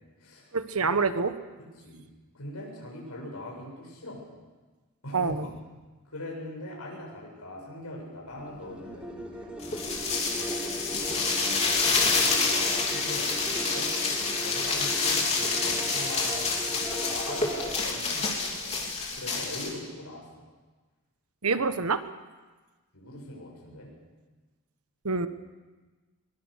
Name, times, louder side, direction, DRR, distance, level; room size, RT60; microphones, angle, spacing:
voice 1, 0.5-1.3 5.1-5.5 21.4-22.0 25.0-25.3, right 4 dB, 75° right, 11 dB, 1.3 m, -26 dB
voice 2, 2.3-4.2 5.0-5.5 6.1-13.9 14.4-18.8 19.1-20.2 22.9-23.9 25.1-25.2, left 1 dB, 90° left, -2 dB, 7.6 m, -41 dB
sound 1, 8.3-17.8, right 1 dB, 5° right, 3.2 m, -38 dB
sound 2, 9.6-19.7, left 4 dB, 30° left, 3.2 m, -28 dB
22.0 x 22.0 x 6.8 m, 1.3 s
head